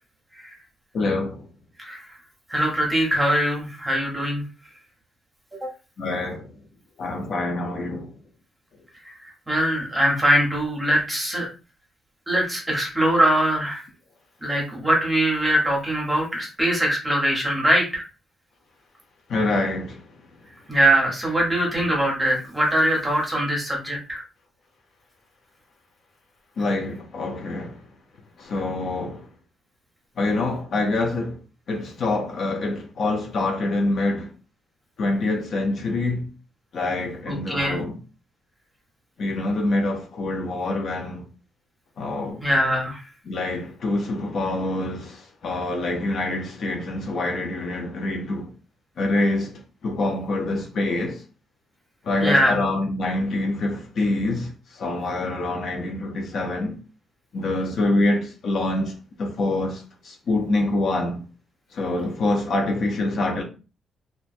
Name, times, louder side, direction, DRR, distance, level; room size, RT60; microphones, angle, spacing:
voice 1, 0.9-1.5 6.0-6.5 7.0-8.1 19.3-20.0 26.6-27.8 28.4-29.2 30.2-31.4 31.7-34.3 35.0-36.3 36.7-38.0 39.2-41.2 42.0-42.4 43.3-48.5 49.0-51.2 52.1-54.5 54.8-56.8 57.3-61.2 61.7-63.4, left 2 dB, 50° left, 0.6 m, -25 dB
voice 2, 2.5-4.4 5.6-5.7 9.2-11.5 12.3-13.8 14.4-18.0 20.7-24.2 37.3-37.8 42.4-43.0 52.2-52.6, right 1 dB, 10° right, 0.9 m, -22 dB
2.9 x 2.2 x 2.5 m
cardioid pair, 160°, 0 cm